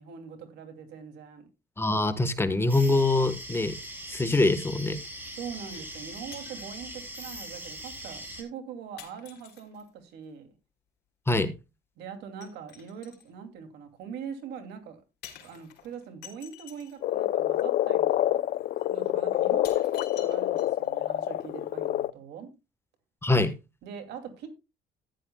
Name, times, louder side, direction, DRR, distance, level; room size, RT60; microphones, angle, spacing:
voice 1, 0.0-1.5 5.3-10.5 12.0-15.0 15.4-18.4 18.9-22.5 23.8-24.5, right 7 dB, 80° right, 2.6 m, -42 dB
voice 2, 1.8-3.7 4.1-5.0 11.3-11.5 23.2-23.5, left 2 dB, 15° left, 1.2 m, -24 dB
sound 1, 2.7-8.4, right 1 dB, 10° right, 3.6 m, -41 dB
sound 2, 5.7-6.0 6.3-6.7 7.7-7.8 9.0-9.9 12.4-13.3 15.2-17.0 18.1-18.2 18.8-18.9 19.6-20.9 21.2-21.3, left 11 dB, 75° left, 3.5 m, -49 dB
Frog, 17.0-22.1, left 13 dB, 60° left, 0.5 m, -27 dB
14.0 x 10.5 x 2.2 m
cardioid pair, 110°, 17 cm